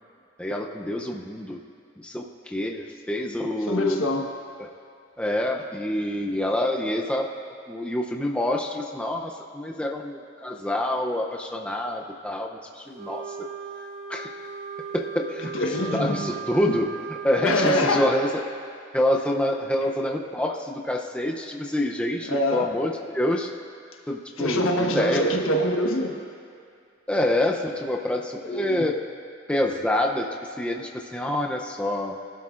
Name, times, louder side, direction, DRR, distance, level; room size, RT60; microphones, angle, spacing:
voice 1, 0.4-1.6 2.0-4.0 4.6-4.7 5.2-7.3 7.7-13.5 14.1-14.3 14.9-15.5 15.9-18.4 18.9-23.5 24.1-25.4 27.1-28.9 29.5-30.3 30.6-32.1, left 1 dB, 5° left, 0 dB, 0.6 m, -27 dB
voice 2, 3.6-4.3 15.5-16.4 16.7-16.8 17.4-18.1 22.3-22.7 24.4-26.2 28.4-28.9, left 1 dB, 85° left, 2 dB, 1.3 m, -25 dB
Wind instrument woodwind instrument, 12.9-17.8, right 6 dB, 35° right, 1.6 m, -37 dB
22.0 x 12.0 x 2.5 m, 2.4 s
head